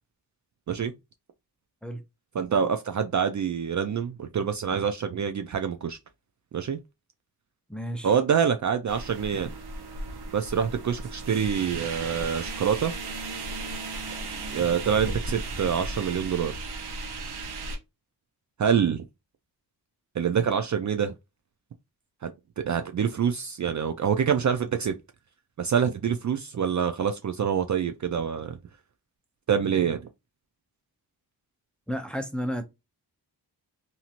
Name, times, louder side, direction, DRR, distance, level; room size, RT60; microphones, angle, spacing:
voice 1, 2.3-6.0 6.5-6.8 8.0-9.5 10.3-12.9 14.5-16.5 18.6-19.0 20.2-21.1 22.2-22.3 22.6-25.0 25.6-28.6 29.5-30.1, right 7 dB, 45° right, 0.4 m, -26 dB
voice 2, 7.7-8.1 31.9-32.6, equal, ahead, 0.7 m, -32 dB
sound 1, 8.9-17.8, right 2 dB, 70° right, 0.8 m, -35 dB
2.9 x 2.7 x 2.5 m
cardioid pair, 55°, 41 cm